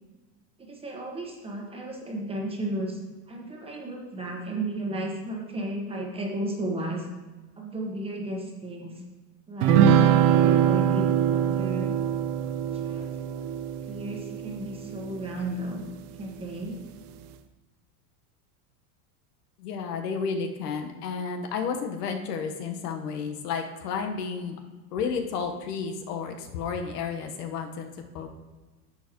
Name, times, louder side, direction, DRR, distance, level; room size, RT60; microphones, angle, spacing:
voice 1, 0.6-3.0 3.3-7.1 7.6-9.0 9.5-11.9 12.7-13.5 13.9-15.8 16.1-16.8, right 1 dB, 10° right, 0 dB, 1.2 m, -34 dB
sound 1, 9.6-15.3, right 9 dB, 70° right, 0.8 m, -23 dB
voice 2, 19.6-24.6 24.9-27.9 28.1-28.3, left 5 dB, 80° left, 5 dB, 1.3 m, -32 dB
11.0 x 7.4 x 3.0 m, 1.2 s
supercardioid pair, 145°, 47 cm